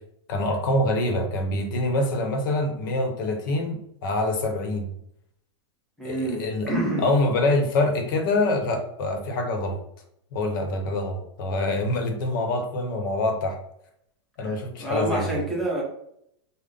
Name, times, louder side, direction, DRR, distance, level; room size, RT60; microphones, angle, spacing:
voice 1, 0.3-4.9 6.0-6.7 7.0-9.8 10.3-13.6 14.4-15.4, left 2 dB, 45° left, 4 dB, 0.8 m, -25 dB
voice 2, 6.0-7.1 14.4-15.8, right 1 dB, ahead, -3 dB, 0.6 m, -28 dB
5.2 x 2.1 x 3.7 m, 0.74 s
supercardioid pair, 180°, 15 cm